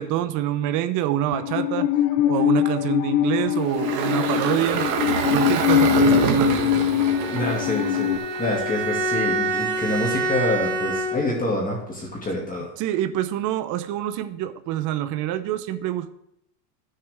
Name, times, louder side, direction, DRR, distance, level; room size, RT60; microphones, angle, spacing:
voice 1, 0.0-1.9 2.3-5.0 5.2-6.7 12.8-16.1, right 12 dB, 40° right, 9 dB, 0.7 m, -26 dB
Musical instrument, 1.3-8.2, left 12 dB, 40° left, 0.5 m, -22 dB
Engine, 3.6-8.8, right 7 dB, 55° right, 1.6 m, -26 dB
Bowed string instrument, 7.0-11.5, right 2 dB, 85° right, 2.7 m, -27 dB
voice 2, 7.3-12.7, left 1 dB, 15° left, -2 dB, 2.0 m, -27 dB
14.5 x 6.6 x 3.5 m, 0.79 s
supercardioid pair, 135°, 49 cm